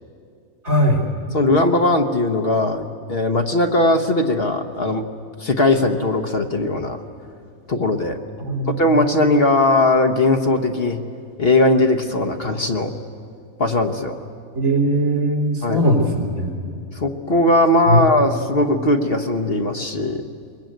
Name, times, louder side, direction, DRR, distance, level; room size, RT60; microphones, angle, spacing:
voice 1, 0.6-1.0 8.4-9.1 14.5-16.6 17.9-18.1, equal, 70° right, 2 dB, 3.8 m, -20 dB
voice 2, 1.3-5.0 5.4-7.0 7.7-8.2 8.7-11.0 11.4-12.9 13.6-14.2 15.6-15.8 16.9-20.2, left 2 dB, 45° left, 7 dB, 1.3 m, -19 dB
23.5 x 21.0 x 9.2 m, 2.4 s
omnidirectional pair, 1.4 m